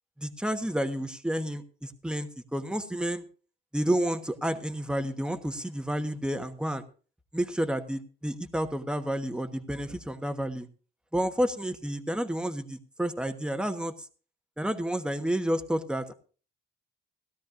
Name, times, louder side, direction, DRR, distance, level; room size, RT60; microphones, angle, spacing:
voice 1, 0.2-3.2 3.7-6.8 7.3-10.7 11.1-13.9 14.6-16.1, right 1 dB, 5° right, 8 dB, 1.2 m, -30 dB
17.5 x 12.5 x 2.5 m, 0.38 s
cardioid pair, 90°, 20 cm